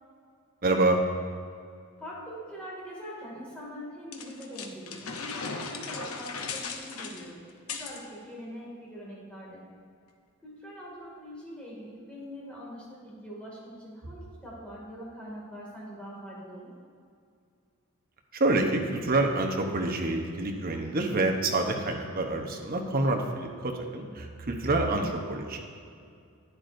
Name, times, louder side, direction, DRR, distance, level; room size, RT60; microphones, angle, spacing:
voice 1, 0.6-1.0 18.3-25.8, right 2 dB, 40° right, 2 dB, 0.9 m, -27 dB
voice 2, 2.0-7.4 7.7-9.6 10.4-16.7, equal, 5° left, -6 dB, 2.3 m, -43 dB
sound 1, 4.1-8.0, left 4 dB, 70° left, 0.8 m, -37 dB
11.0 x 9.3 x 2.6 m, 2.3 s
head